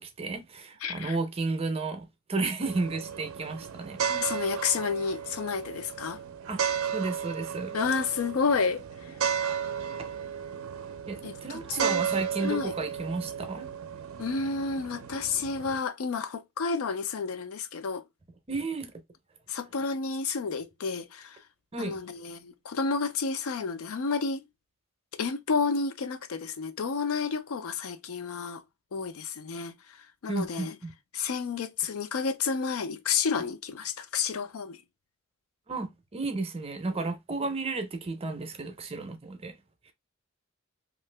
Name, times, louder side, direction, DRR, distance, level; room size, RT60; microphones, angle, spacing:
voice 1, 0.0-4.0 6.5-6.6 6.9-7.8 11.1-13.7 18.5-18.9 21.7-22.0 30.3-30.9 35.7-39.5, right 3 dB, 30° right, 0.5 m, -33 dB
voice 2, 0.8-1.2 4.1-6.2 7.7-8.8 11.2-12.0 12.4-12.7 14.2-18.0 19.5-21.4 21.8-24.4 25.2-28.6 28.9-29.7 30.2-30.7 31.1-34.8, left 5 dB, 85° left, 0.5 m, -30 dB
sound 1, 2.6-15.8, right 7 dB, 80° right, 0.4 m, -34 dB
2.7 x 2.5 x 3.2 m
head